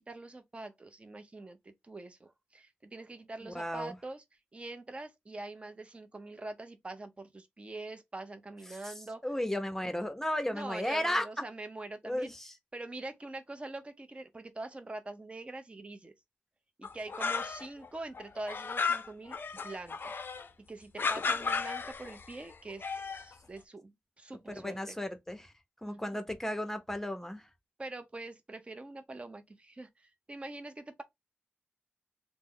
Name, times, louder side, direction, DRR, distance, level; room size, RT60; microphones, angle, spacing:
voice 1, 0.0-4.2 4.5-9.2 10.5-12.3 12.7-16.1 16.8-19.4 19.6-25.0 25.9-26.2 27.8-31.0, right 2 dB, 25° right, 0.6 m, -44 dB
voice 2, 3.4-4.0 8.7-8.9 9.2-11.4 12.0-12.5 24.6-25.5 25.8-27.5, left 1 dB, 10° left, 0.7 m, -34 dB
sound 1, 16.8-17.9 18.1-20.5 21.0-22.3 22.7-23.3, left 5 dB, 55° left, 0.4 m, -34 dB
3.2 x 2.0 x 3.7 m
wide cardioid pair, 105°, 4 cm